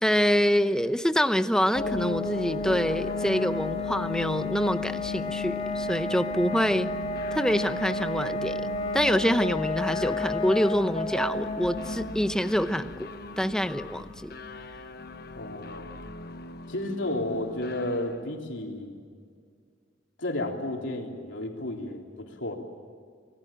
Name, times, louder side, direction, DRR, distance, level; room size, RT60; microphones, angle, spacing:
voice 1, 0.0-6.9 7.3-8.7 8.9-13.1 13.4-14.3, equal, 5° left, 10 dB, 0.8 m, -26 dB
sound 1, 1.6-18.4, left 2 dB, 55° left, 1.0 m, -44 dB
sound 2, 1.7-16.3, left 2 dB, 35° left, 2.0 m, -32 dB
voice 2, 15.4-15.9 16.7-19.0 20.2-22.5, left 1 dB, 80° left, 1 dB, 3.5 m, -32 dB
26.0 x 18.5 x 8.9 m, 2.1 s
head